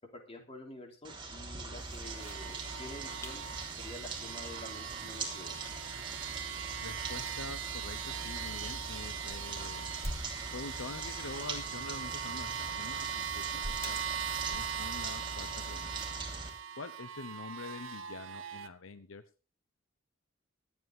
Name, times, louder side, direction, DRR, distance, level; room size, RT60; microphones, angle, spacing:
voice 1, 0.1-3.4 3.8-5.5, left 1 dB, 30° left, 3 dB, 3.3 m, -48 dB
sound 1, 1.0-16.5, right 3 dB, 25° right, 3.1 m, -42 dB
sound 2, 1.8-15.0, equal, 15° left, 2.2 m, -49 dB
sound 3, 2.0-18.7, right 8 dB, 65° right, 1.0 m, -40 dB
voice 2, 6.8-9.9 10.5-12.5 12.8-13.1 13.3-14.1 14.5-16.0 16.8-19.2, left 3 dB, 75° left, 12 dB, 0.9 m, -45 dB
23.5 x 8.5 x 3.7 m, 0.35 s
head